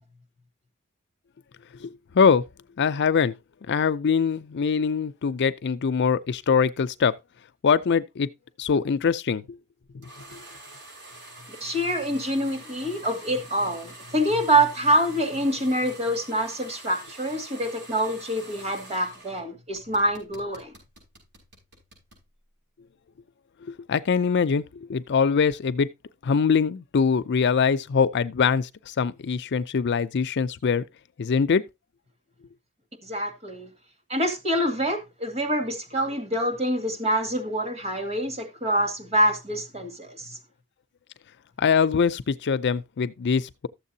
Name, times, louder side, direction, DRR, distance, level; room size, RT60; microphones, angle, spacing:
voice 1, 1.8-2.4 2.8-3.3 3.7-7.1 7.6-8.3 8.6-9.6 10.3-10.4 23.7-24.6 24.9-25.9 26.2-30.8 31.2-31.6 41.6-43.7, left 6 dB, 55° left, 0.5 m, -23 dB
sound 1, 10.0-19.4 19.7-22.2, right 2 dB, 55° right, 5.3 m, -46 dB
voice 2, 11.6-20.7 33.0-33.7 34.1-40.4, right 1 dB, 30° right, 2.1 m, -26 dB
13.0 x 7.4 x 2.7 m
head